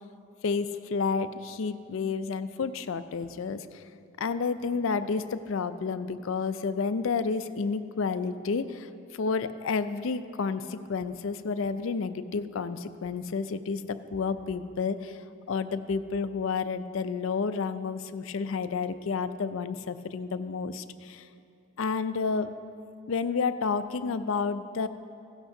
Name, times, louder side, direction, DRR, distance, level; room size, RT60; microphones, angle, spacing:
voice 1, 0.4-3.8 4.2-15.2 15.5-21.3 21.8-22.5 23.1-24.9, left 5 dB, 65° left, 12 dB, 0.4 m, -30 dB
16.0 x 12.0 x 2.7 m, 2.6 s
head